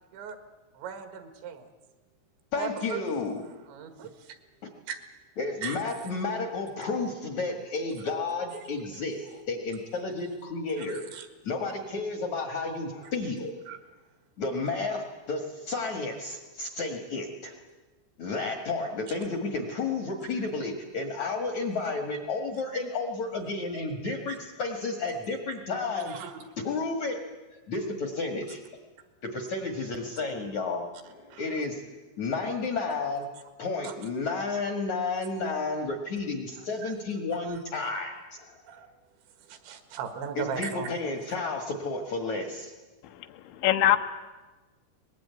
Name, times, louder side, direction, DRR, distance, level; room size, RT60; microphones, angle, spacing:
voice 1, 0.8-1.6 2.6-3.0 3.7-4.4 4.9-5.0 5.6-5.8 10.8-11.3 13.7-13.8 26.1-26.4 31.3-31.4 33.8-33.9 36.8-36.9 37.3-37.5 38.6-38.9 39.5-40.9, right 7 dB, 70° right, 8 dB, 4.0 m, -37 dB
voice 2, 2.5-3.4 4.6-4.7 5.4-11.0 11.4-13.5 14.4-17.5 18.2-26.3 26.6-27.2 27.5-28.6 29.2-33.3 33.6-38.6 40.4-42.7, left 3 dB, 55° left, 4 dB, 2.1 m, -32 dB
voice 3, 43.0-44.0, left 12 dB, 75° left, 8 dB, 3.2 m, -24 dB
23.0 x 20.0 x 9.4 m, 1.2 s
omnidirectional pair, 5.5 m